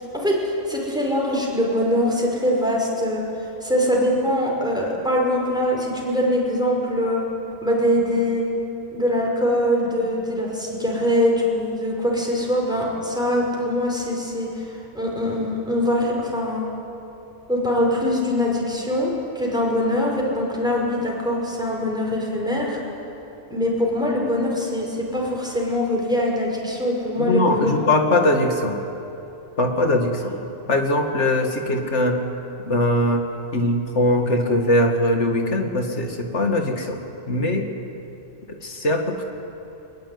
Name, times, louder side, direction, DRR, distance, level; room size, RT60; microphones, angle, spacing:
voice 1, 0.1-7.2 7.6-8.5 8.9-16.7 17.5-22.8 23.5-27.7, left 1 dB, 5° right, -3 dB, 5.7 m, -23 dB
voice 2, 27.2-28.8 29.6-30.3 30.7-32.2 32.6-33.2 33.5-37.0 37.3-37.7 38.5-39.2, left 1 dB, 65° left, 4 dB, 2.4 m, -21 dB
22.5 x 21.5 x 9.5 m, 2.9 s
omnidirectional pair, 1.3 m